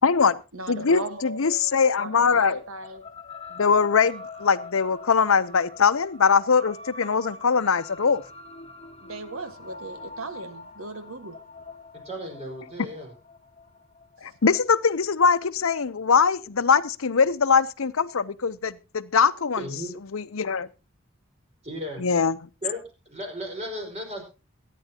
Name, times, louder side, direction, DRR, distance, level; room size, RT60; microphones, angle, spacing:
voice 1, 0.0-0.4 0.7-2.6 3.5-8.2 14.2-19.7 20.1-20.7 22.0-22.4, left 5 dB, 80° left, 0.7 m, -22 dB
voice 2, 0.5-1.4 2.0-3.0 9.0-11.4, right 2 dB, 90° right, 1.5 m, -37 dB
sound 1, 0.7-15.4, left 3 dB, 30° left, 1.3 m, -44 dB
voice 3, 11.9-13.1 19.6-19.9 21.6-22.0 22.6-24.2, equal, 30° right, 4.9 m, -35 dB
22.5 x 10.0 x 2.8 m
head